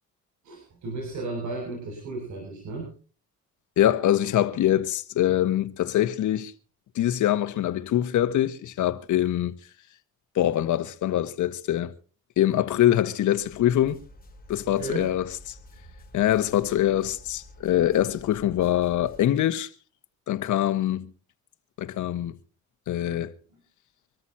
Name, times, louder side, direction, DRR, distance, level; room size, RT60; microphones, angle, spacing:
voice 1, 0.4-2.9 14.7-15.1 23.5-23.6, right 3 dB, 70° right, 7.1 m, -34 dB
voice 2, 3.8-6.5 6.9-9.5 10.3-11.9 12.4-14.0 14.5-15.5 16.1-19.7 20.3-21.1 21.8-22.3 22.9-23.3, left 12 dB, 75° left, 1.6 m, -24 dB
sound 1, 13.4-19.2, left 1 dB, 30° left, 3.8 m, -49 dB
25.5 x 13.5 x 2.9 m
cardioid pair, 90°, 30 cm